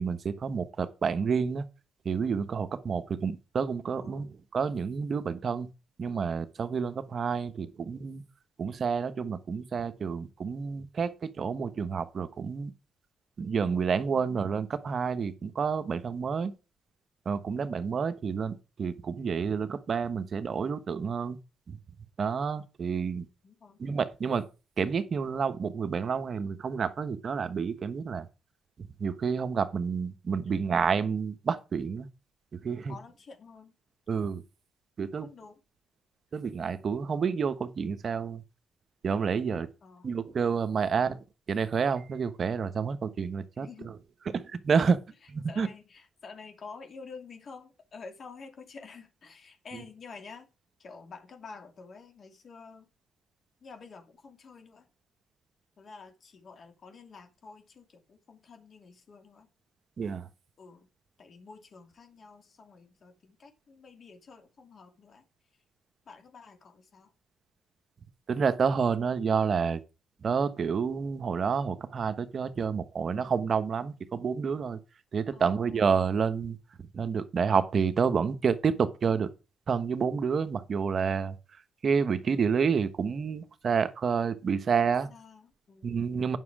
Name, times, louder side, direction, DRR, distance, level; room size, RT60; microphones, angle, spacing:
voice 1, 0.0-1.7 2.0-4.3 4.5-5.7 6.0-8.2 8.6-12.7 13.4-16.5 17.2-21.4 21.7-21.8 22.2-23.3 23.8-24.5 24.8-28.3 28.8-32.1 32.5-32.9 34.1-34.4 35.0-35.3 36.3-38.4 39.0-39.7 40.0-41.2 41.5-43.7 44.3-45.0 45.3-45.7 49.7-49.8 60.0-60.3 68.3-69.8 70.2-74.8 75.1-76.6 76.9-79.3 79.7-81.3 81.8-85.1 85.8-86.4, right 6 dB, 50° right, 1.0 m, -29 dB
voice 2, 3.9-4.3 23.4-23.8 30.4-30.7 32.7-33.7 35.2-35.6 39.8-40.1 43.6-44.0 45.5-50.5 50.8-52.9 53.6-54.9 55.8-59.5 60.6-60.9 61.2-65.3 66.1-67.1 75.3-75.8 84.8-86.1, left 4 dB, 50° left, 2.6 m, -49 dB
9.5 x 6.2 x 4.8 m
cardioid pair, 90°, 0 cm